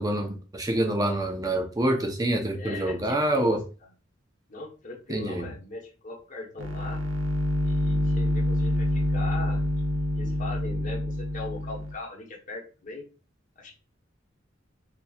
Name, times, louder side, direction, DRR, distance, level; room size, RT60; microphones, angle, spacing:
voice 1, 0.0-3.6 5.1-5.5, right 1 dB, 20° right, 3 dB, 0.7 m, -26 dB
voice 2, 2.5-3.6 4.5-7.0 7.6-13.0 13.6-13.7, left 3 dB, 40° left, 0 dB, 1.1 m, -39 dB
sound 1, 6.6-11.9, left 1 dB, 70° right, 0.7 m, -27 dB
4.2 x 3.0 x 2.4 m, 0.34 s
head